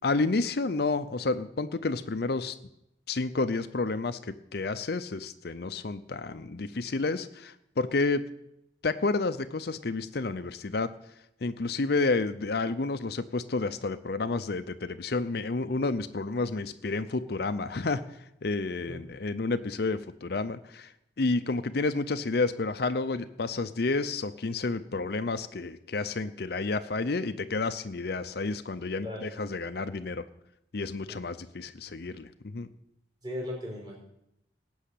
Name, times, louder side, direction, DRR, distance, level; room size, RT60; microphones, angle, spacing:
voice 1, 0.0-2.6 3.1-8.2 8.8-10.9 11.4-18.0 18.4-20.9 21.2-30.2 30.7-32.7, left 3 dB, 55° left, 11 dB, 0.6 m, -30 dB
voice 2, 33.2-34.0, left 1 dB, 20° right, -3 dB, 4.5 m, -36 dB
18.5 x 6.4 x 8.4 m, 0.81 s
head